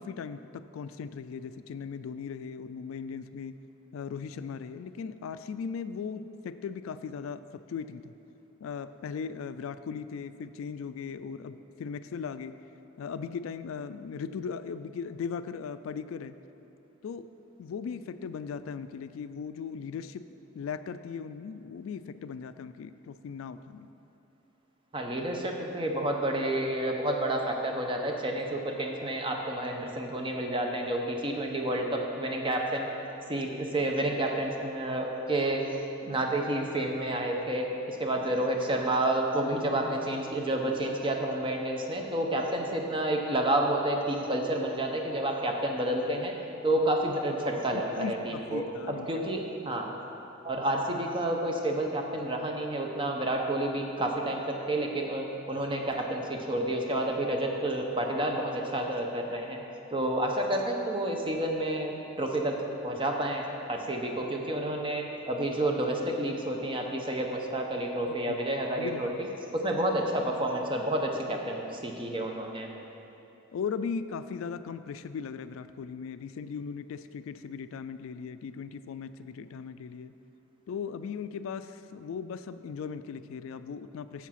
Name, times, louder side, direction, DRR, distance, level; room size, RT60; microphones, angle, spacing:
voice 1, 0.0-3.6 3.9-8.1 8.6-12.6 13.0-16.4 17.0-17.3 17.6-20.3 20.5-23.9 46.7-46.8 47.7-49.1 60.0-60.1 68.0-68.4 68.8-69.2 73.5-80.1 80.7-84.3, left 6 dB, 75° left, 12 dB, 0.3 m, -38 dB
voice 2, 24.9-32.9 33.3-35.6 36.0-46.3 46.6-49.9 50.4-59.6 59.9-62.5 62.8-72.7, right 1 dB, 25° right, 2 dB, 0.8 m, -30 dB
7.2 x 7.1 x 5.7 m, 3.0 s
head